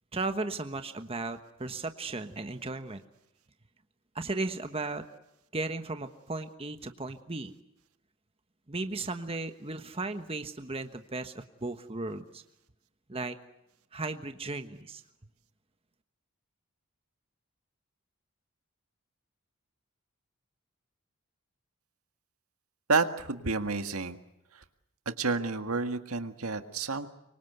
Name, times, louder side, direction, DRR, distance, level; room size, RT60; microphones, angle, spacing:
voice 1, 0.1-3.0 4.1-5.0 5.5-7.5 8.7-12.4 13.1-13.4 13.9-15.0, right 3 dB, 25° right, 8 dB, 1.3 m, -35 dB
voice 2, 22.9-24.2 24.5-24.6 25.0-27.1, right 4 dB, 80° right, 8 dB, 1.8 m, -30 dB
25.5 x 24.0 x 8.1 m, 0.86 s
head